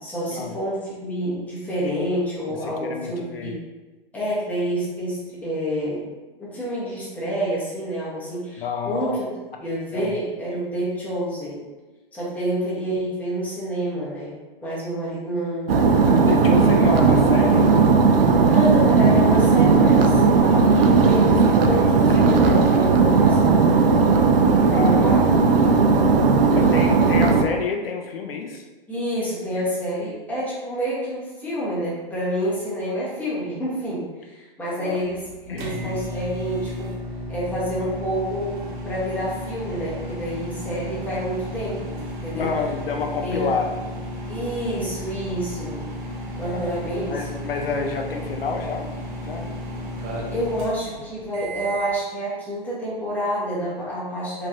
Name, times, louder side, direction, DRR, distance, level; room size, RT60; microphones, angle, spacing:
voice 1, 0.0-3.6 4.1-6.1 6.4-9.3 9.6-11.6 12.1-14.3 14.6-15.7 16.4-16.6 18.5-23.9 24.6-25.2 28.9-36.9 37.3-42.5 43.2-43.5 44.3-45.8 46.4-47.2 50.3-54.5, equal, 5° left, -8 dB, 0.8 m, -28 dB
voice 2, 2.6-3.6 8.6-9.2 9.9-10.1 16.0-17.7 24.7-25.1 26.5-28.7 34.8-35.0 35.5-36.0 42.4-43.7 46.5-46.7 47.1-48.9 49.2-49.6, left 5 dB, 75° left, 3 dB, 0.5 m, -29 dB
sound 1, 15.7-27.4, right 4 dB, 75° right, 0.5 m, -16 dB
sound 2, 35.0-52.0, equal, 30° right, 0.8 m, -33 dB
3.0 x 2.6 x 2.5 m, 1.2 s
figure-of-eight pair, 120°, 29 cm